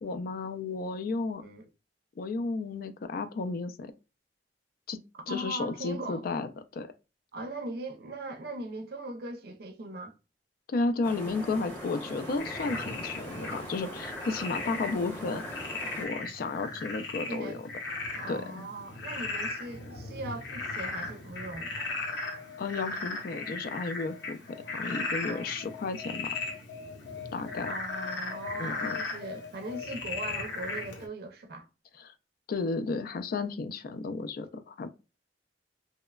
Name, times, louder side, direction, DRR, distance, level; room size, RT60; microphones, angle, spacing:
voice 1, 0.0-1.4 2.2-3.9 4.9-5.0 5.3-6.9 10.7-17.6 18.3-18.7 22.6-26.3 27.3-27.7 28.6-29.0 32.0-32.1 32.5-34.9, left 3 dB, 55° left, 0.3 m, -33 dB
voice 2, 5.3-6.2 7.3-10.1 17.3-17.6 18.1-21.7 25.2-25.5 27.7-31.7, right 2 dB, 60° right, 0.5 m, -39 dB
sound 1, 11.0-16.1, equal, 10° left, 0.8 m, -41 dB
Frog, 12.4-31.1, left 3 dB, 85° left, 0.8 m, -37 dB
2.9 x 2.1 x 2.2 m
head